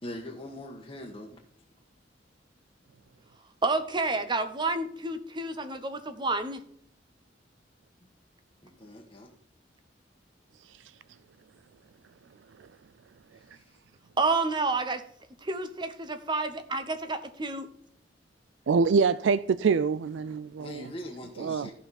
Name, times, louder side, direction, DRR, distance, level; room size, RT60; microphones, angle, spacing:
voice 1, 0.0-1.4 8.6-9.3 13.3-13.8 20.6-21.7, left 1 dB, 25° left, 1.3 m, -42 dB
voice 2, 3.6-6.6 14.2-15.0 15.4-17.7, right 3 dB, 25° right, 0.9 m, -29 dB
voice 3, 18.7-20.8 21.4-21.7, right 5 dB, 90° right, 0.4 m, -25 dB
14.0 x 5.6 x 4.2 m
head